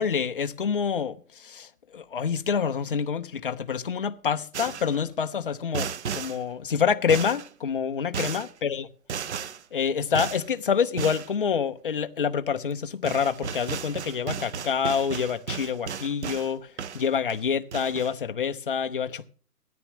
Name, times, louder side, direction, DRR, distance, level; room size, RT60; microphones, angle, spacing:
voice 1, 0.0-8.9 9.7-19.3, left 7 dB, 35° left, 0.5 m, -27 dB
sound 1, 4.5-5.0 5.7-6.4 7.1-7.5 8.1-8.5 9.1-9.6 10.2-10.5 11.0-11.3 12.7-12.8 13.1-16.5 16.8-17.4 17.7-18.1, right 6 dB, 45° right, 0.6 m, -34 dB
18.0 x 13.5 x 3.0 m
hypercardioid pair, 165°, 47 cm